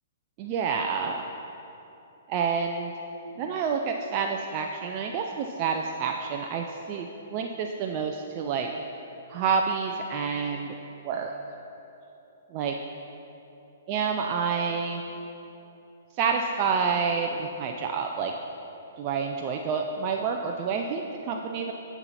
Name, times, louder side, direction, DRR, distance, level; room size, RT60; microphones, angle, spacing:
voice 1, 0.4-1.2 2.3-2.9 3.4-8.7 9.3-10.7 11.0-11.3 12.5-12.8 13.9-15.0 16.2-18.3 19.0-21.7, right 5 dB, 35° right, 2 dB, 0.4 m, -28 dB
10.0 x 7.0 x 2.9 m, 3.0 s
figure-of-eight pair, 120°, 0 cm